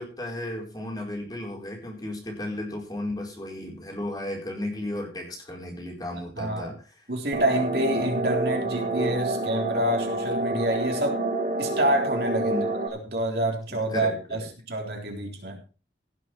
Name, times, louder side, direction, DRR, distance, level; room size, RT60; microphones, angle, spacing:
voice 1, 0.0-6.8 12.4-12.7 13.7-14.4, left 1 dB, 20° left, 1 dB, 4.5 m, -34 dB
voice 2, 6.4-6.7 7.1-11.2 11.6-12.6 12.9-15.6, right 1 dB, 60° right, 2 dB, 3.6 m, -27 dB
sound 1, 7.3-12.9, right 2 dB, 45° right, 1.9 m, -28 dB
17.0 x 7.4 x 4.6 m, 0.36 s
head